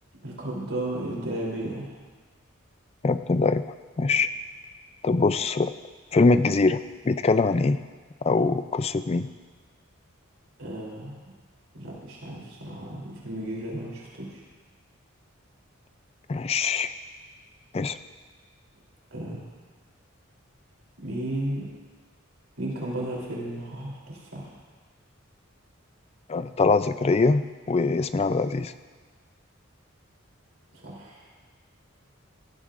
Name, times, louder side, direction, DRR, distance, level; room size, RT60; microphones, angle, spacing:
voice 1, 0.2-1.9 10.6-11.2 11.7-14.4 19.1-19.5 21.0-21.7 22.6-24.5 30.7-31.2, right 1 dB, 85° right, -4 dB, 3.2 m, -34 dB
voice 2, 3.0-3.6 4.0-4.3 5.0-5.7 6.1-7.8 8.2-9.3 16.3-16.9 17.7-18.0 26.3-28.7, left 3 dB, 30° left, 12 dB, 0.4 m, -23 dB
18.5 x 12.5 x 2.5 m, 1.4 s
head